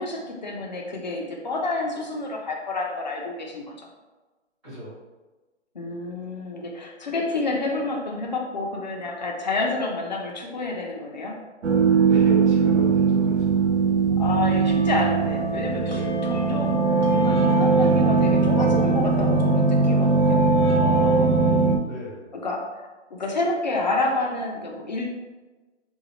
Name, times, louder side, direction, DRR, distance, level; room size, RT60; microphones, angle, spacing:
voice 1, 0.0-3.8 5.7-11.3 14.2-20.4 22.3-25.1, left 2 dB, 40° left, 0 dB, 0.5 m, -29 dB
sound 1, 11.6-21.8, right 4 dB, 65° right, 0.6 m, -20 dB
voice 2, 12.0-13.6 15.9-16.2 20.7-21.5 21.8-22.2, left 1 dB, ahead, -12 dB, 0.7 m, -34 dB
4.0 x 2.3 x 2.8 m, 1.2 s
hypercardioid pair, 155°, 37 cm